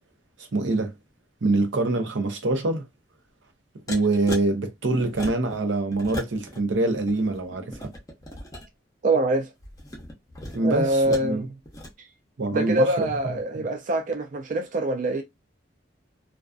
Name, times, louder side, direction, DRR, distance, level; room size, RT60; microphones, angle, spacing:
voice 1, 0.5-0.9 1.4-2.9 3.9-7.9 10.5-11.4 12.4-13.1 13.5-13.6, right 2 dB, 85° right, 0.7 m, -25 dB
sound 1, 3.9-4.4 5.0-5.6 5.9-6.6 6.9-8.7 9.6-11.3 11.6-11.9, left 1 dB, 20° left, 0.7 m, -38 dB
voice 2, 9.0-9.5 10.6-11.5 12.0-12.1 12.5-15.2, right 1 dB, 45° right, 0.3 m, -24 dB
2.4 x 2.3 x 2.3 m
head